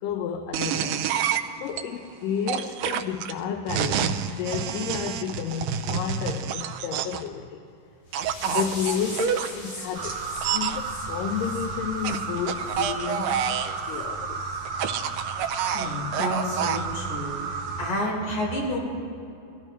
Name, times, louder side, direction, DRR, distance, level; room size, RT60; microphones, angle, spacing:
voice 1, 0.0-7.6 8.4-14.4, left 8 dB, 85° left, 6 dB, 2.3 m, -32 dB
sound 1, 0.5-1.8 2.5-7.3 8.1-9.5 10.4-10.8 12.0-13.8 14.7-16.8, right 9 dB, 90° right, 2.3 m, -28 dB
sound 2, 8.1-12.8 13.2-13.4 13.9-14.0 14.5-14.6 15.1-15.2, left 1 dB, 30° left, 2.4 m, -40 dB
sound 3, 9.9-17.9, right 4 dB, 55° right, 2.6 m, -33 dB
voice 2, 15.7-17.4 17.8-18.8, left 1 dB, 60° left, -4 dB, 5.2 m, -29 dB
22.0 x 14.5 x 3.1 m, 2.6 s
omnidirectional pair, 3.8 m